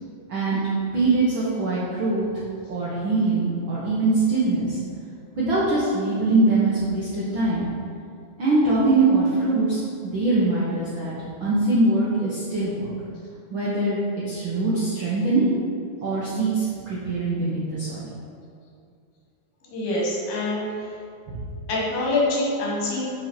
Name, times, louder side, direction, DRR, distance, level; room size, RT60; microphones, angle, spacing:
voice 1, 0.3-0.6 0.9-2.3 2.7-4.8 5.4-7.7 8.4-11.1 11.4-12.9 13.5-14.0 14.3-15.5 16.0-18.0 21.3-21.4, right 2 dB, 75° right, -8 dB, 1.1 m, -22 dB
voice 2, 19.6-20.9 21.7-23.1, left 2 dB, 85° left, -4 dB, 3.3 m, -25 dB
6.5 x 5.9 x 4.4 m, 2.4 s
omnidirectional pair, 3.9 m